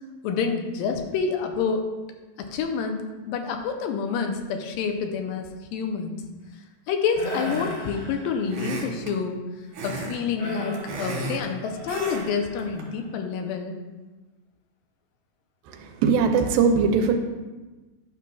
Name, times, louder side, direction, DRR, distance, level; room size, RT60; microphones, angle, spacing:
voice 1, 0.2-1.9 2.4-6.2 6.9-9.4 9.8-13.8, left 5 dB, 85° left, 5 dB, 2.4 m, -28 dB
sound 1, 7.2-8.7 10.4-13.0, left 1 dB, 55° left, 1.0 m, -37 dB
sound 2, 7.5-7.9 8.5-9.1 9.7-10.2 10.5-11.5 11.9-12.3 12.6-12.8, right 3 dB, 65° right, 2.4 m, -34 dB
voice 2, 15.7-17.1, right 5 dB, 85° right, 3 dB, 2.3 m, -21 dB
10.5 x 5.9 x 2.3 m, 1.2 s
omnidirectional pair, 4.0 m